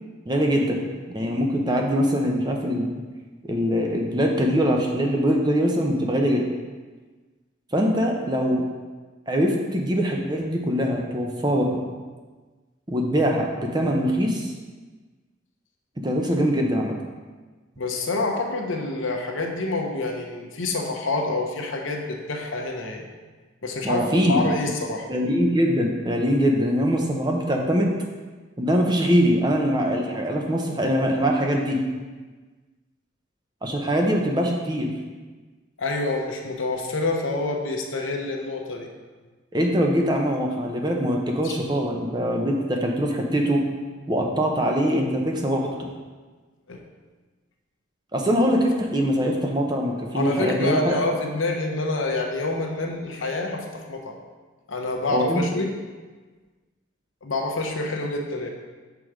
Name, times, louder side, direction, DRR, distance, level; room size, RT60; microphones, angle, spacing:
voice 1, 0.3-0.8 1.1-2.9 3.4-6.4 7.7-8.6 9.3-11.8 12.9-14.5 16.0-16.9 23.8-24.7 25.1-27.9 28.6-31.8 33.6-34.9 39.5-43.6 44.1-45.9 48.1-51.0 55.1-55.4, equal, 20° right, 1 dB, 0.7 m, -23 dB
voice 2, 17.8-23.0 23.6-25.1 35.8-38.9 41.4-41.5 46.7-46.8 50.1-54.2 54.7-55.7 57.2-58.5, left 2 dB, 80° left, 2 dB, 0.9 m, -27 dB
6.1 x 4.7 x 4.9 m, 1.3 s
head